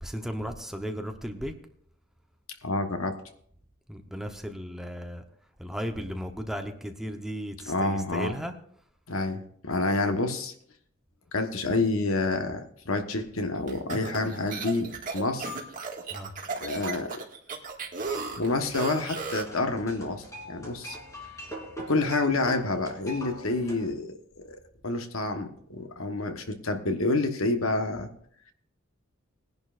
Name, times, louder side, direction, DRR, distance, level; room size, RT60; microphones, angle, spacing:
voice 1, 0.0-1.5 3.9-5.2 5.6-8.5 16.1-16.3, equal, ahead, 4 dB, 1.0 m, -35 dB
voice 2, 2.6-3.1 7.7-8.3 9.1-10.5 11.3-15.5 16.6-17.2 18.4-21.0 21.9-24.6 24.8-28.1, left 2 dB, 75° left, 6 dB, 1.3 m, -28 dB
sound 1, 13.7-19.6, right 4 dB, 40° right, 2.0 m, -35 dB
sound 2, 18.0-23.9, right 1 dB, 15° left, 3.2 m, -43 dB
21.0 x 10.5 x 2.6 m, 0.63 s
head